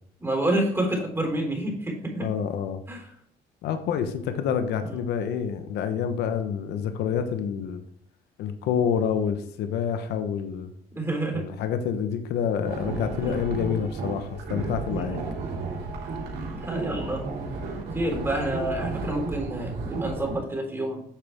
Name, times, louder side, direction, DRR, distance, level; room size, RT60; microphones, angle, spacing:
voice 1, 0.2-2.3 2.9-3.0 4.8-5.0 10.9-11.5 13.2-13.4 14.9-15.2 16.6-17.2 17.9-21.0, right 1 dB, 15° right, 1 dB, 3.8 m, -28 dB
voice 2, 2.2-2.8 3.6-7.8 8.4-10.7 11.3-15.2, left 7 dB, 80° left, 8 dB, 1.1 m, -28 dB
sound 1, 12.6-20.4, right 3 dB, 75° right, 3.4 m, -33 dB
9.7 x 7.0 x 3.6 m, 0.67 s
cardioid pair, 110°, 17 cm